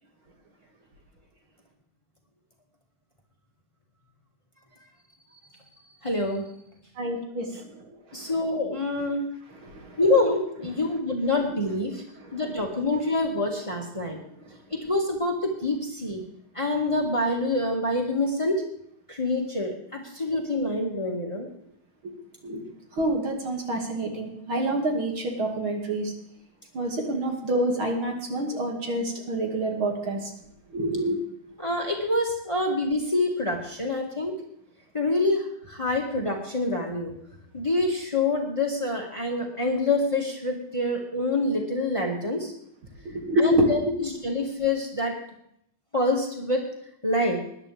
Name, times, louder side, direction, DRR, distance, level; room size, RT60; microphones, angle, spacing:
voice 1, 6.0-6.5 8.1-9.2 10.0-12.0 12.3-14.2 14.7-16.2 16.6-18.6 19.1-21.5 31.6-34.4 34.9-37.1 37.5-42.5 43.4-45.2 45.9-46.6 47.0-47.4, left 2 dB, 15° left, 0 dB, 1.8 m, -26 dB
voice 2, 7.0-7.8 9.6-10.0 12.2-12.4 22.0-22.1 22.4-22.6 23.0-26.1 26.7-30.3 30.7-31.2 43.0-43.9, right 1 dB, 75° right, 1 dB, 3.1 m, -27 dB
21.0 x 10.5 x 3.5 m, 0.73 s
omnidirectional pair, 2.3 m